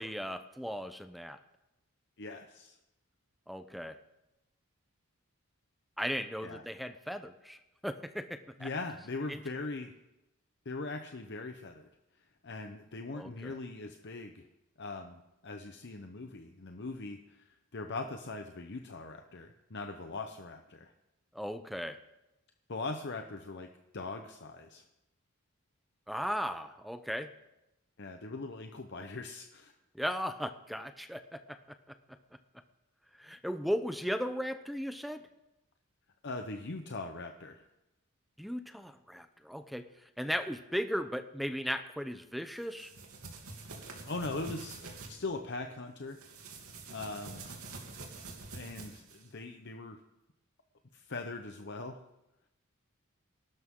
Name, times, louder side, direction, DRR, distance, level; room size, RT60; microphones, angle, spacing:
voice 1, 0.0-1.4 3.5-4.0 6.0-8.7 9.3-9.4 13.1-13.6 21.3-22.0 26.1-27.3 29.9-31.6 33.2-35.3 38.4-39.9 40.2-42.9, equal, ahead, 8 dB, 0.6 m, -36 dB
voice 2, 2.2-2.8 6.4-6.6 8.6-9.9 10.6-11.9 12.4-14.5 14.8-20.9 22.7-23.7 23.9-24.8 28.0-29.7 36.2-37.6 44.0-46.2 46.9-47.4 48.5-50.0 50.9-52.0, left 3 dB, 50° left, 5 dB, 0.9 m, -41 dB
sound 1, 42.6-45.1 46.1-49.3, right 3 dB, 85° right, 2.9 m, -46 dB
23.5 x 12.5 x 3.8 m, 0.93 s
head